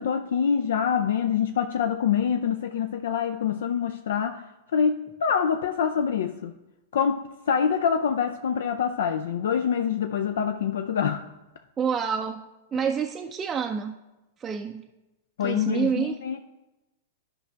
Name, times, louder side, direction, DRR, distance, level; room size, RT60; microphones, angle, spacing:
voice 1, 0.0-4.4 4.7-6.6 6.9-11.2 12.7-12.9 15.4-16.4, left 7 dB, 65° left, 8 dB, 0.4 m, -25 dB
voice 2, 11.8-12.4 12.7-14.0 14.4-14.9 15.4-16.2, right 7 dB, 20° right, 2 dB, 0.4 m, -28 dB
12.0 x 5.3 x 3.4 m, 1.0 s
figure-of-eight pair, 105°, 0 cm